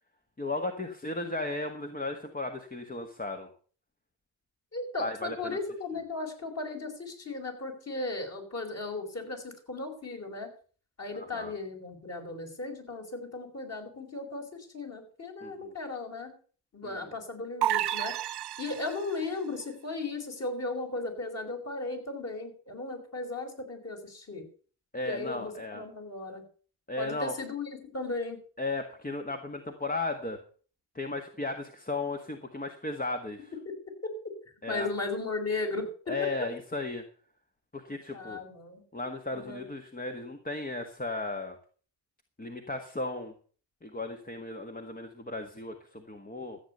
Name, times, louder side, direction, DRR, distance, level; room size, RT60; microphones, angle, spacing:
voice 1, 0.4-3.5 5.0-5.6 11.1-11.5 15.4-15.7 16.8-17.1 24.9-25.8 26.9-27.3 28.6-30.4 30.9-33.5 34.6-34.9 36.1-37.0 37.7-38.4 38.9-41.6 42.4-43.3 43.8-46.6, left 2 dB, 20° left, 5 dB, 1.7 m, -35 dB
voice 2, 4.7-10.5 11.0-16.3 16.7-18.1 18.6-24.4 25.1-26.4 27.0-28.4 34.7-36.1 38.1-38.8 39.3-39.7, left 3 dB, 35° left, 3 dB, 5.2 m, -36 dB
sound 1, 17.6-19.2, right 13 dB, 60° right, 0.9 m, -31 dB
14.0 x 8.5 x 6.8 m, 0.43 s
cardioid pair, 85°, 45 cm